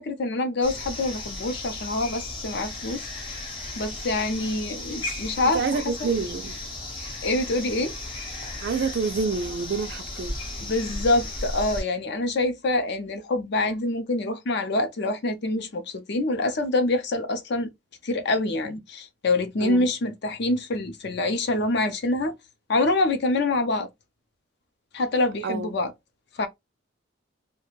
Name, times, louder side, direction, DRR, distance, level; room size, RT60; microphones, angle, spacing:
voice 1, 0.0-3.0 3.8-6.1 7.2-7.9 10.6-17.7 18.0-22.4 22.7-23.9 24.9-25.9 26.4-26.5, left 2 dB, 55° left, 0.5 m, -26 dB
sound 1, 0.6-11.8, left 2 dB, 25° left, 0.8 m, -35 dB
voice 2, 5.5-6.6 8.6-10.3 19.6-19.9 25.4-25.7, right 5 dB, 55° right, 0.3 m, -27 dB
2.4 x 2.1 x 3.1 m
head